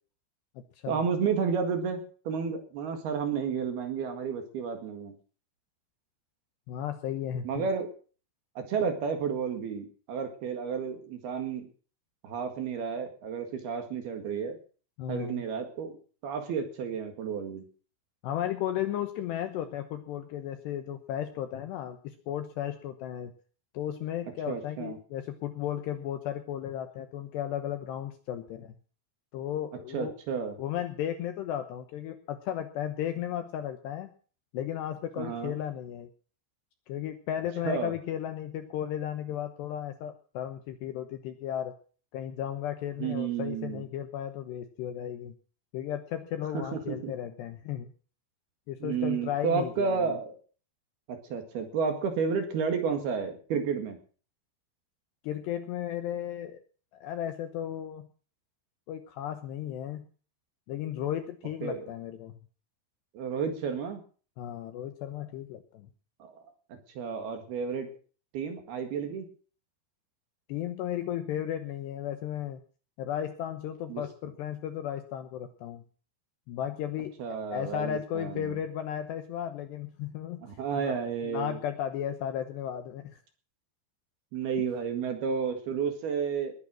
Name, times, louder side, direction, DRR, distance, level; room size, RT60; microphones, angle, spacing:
voice 1, 0.9-5.1 7.4-7.9 8.6-11.7 12.2-14.6 15.1-16.0 16.2-17.6 24.5-25.0 29.9-30.5 35.2-35.5 37.6-37.9 43.0-43.8 46.5-47.1 48.8-50.4 51.1-54.0 61.6-61.8 63.1-64.0 66.2-67.9 68.3-69.3 73.9-74.0 77.2-78.6 80.4-81.6 84.3-86.5, right 6 dB, 60° right, 6 dB, 3.4 m, -31 dB
voice 2, 6.7-7.7 15.0-15.4 18.2-23.3 23.7-28.7 29.3-30.1 30.6-34.1 34.5-36.1 36.9-41.8 42.1-45.3 45.7-47.9 48.7-50.2 55.2-56.6 56.9-58.1 58.9-60.1 60.7-62.4 64.4-65.9 70.5-72.6 73.0-75.8 76.5-77.2 77.5-80.4 80.8-80.9 81.2-83.2, left 10 dB, 75° left, 9 dB, 2.6 m, -34 dB
20.5 x 9.2 x 6.2 m, 0.40 s
omnidirectional pair, 6.0 m